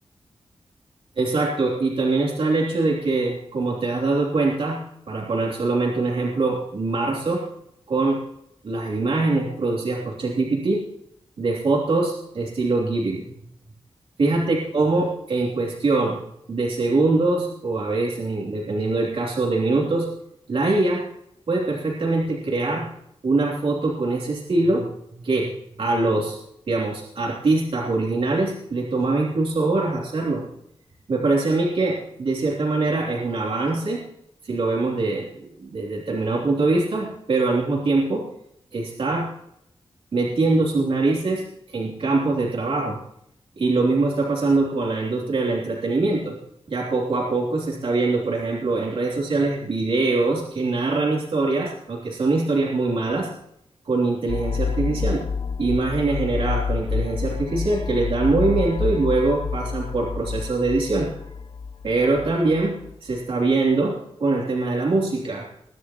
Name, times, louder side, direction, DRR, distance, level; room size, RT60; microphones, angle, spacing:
voice 1, 1.2-4.8 5.1-7.4 7.9-8.2 8.6-10.8 11.4-13.2 14.2-16.2 16.5-20.1 20.5-21.0 21.5-22.9 23.2-24.9 25.2-25.5 25.8-26.4 26.7-30.4 31.1-34.0 34.4-38.3 38.7-39.3 40.1-43.0 43.6-46.4 46.7-53.3 53.8-55.2 55.6-61.1 61.8-62.8 63.0-65.5, right 3 dB, 60° right, -3 dB, 3.2 m, -23 dB
sound 1, 54.3-62.9, left 5 dB, 50° left, 0.6 m, -28 dB
22.0 x 11.5 x 3.0 m, 0.75 s
wide cardioid pair, 175°, 10 cm